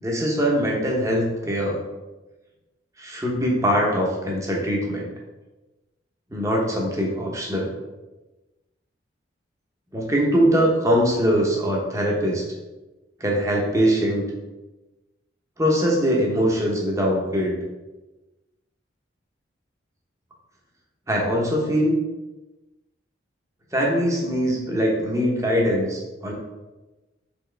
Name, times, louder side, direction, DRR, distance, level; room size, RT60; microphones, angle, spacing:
voice 1, 0.0-1.8 3.0-5.1 6.3-7.7 9.9-12.4 13.2-14.2 15.6-17.6 21.1-21.9 23.7-26.3, equal, 15° right, -2 dB, 0.8 m, -22 dB
4.4 x 3.5 x 3.3 m, 1.1 s
head